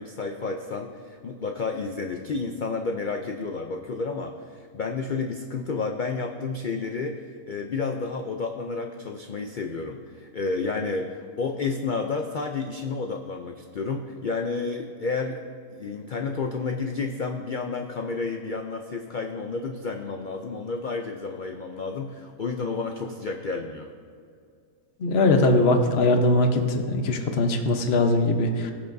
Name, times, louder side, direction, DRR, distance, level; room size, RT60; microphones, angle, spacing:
voice 1, 0.0-15.4 15.7-23.9, left 4 dB, 65° left, 3 dB, 0.4 m, -31 dB
voice 2, 25.0-28.7, left 2 dB, 45° left, 5 dB, 1.1 m, -21 dB
21.0 x 7.0 x 2.7 m, 2.3 s
omnidirectional pair, 1.6 m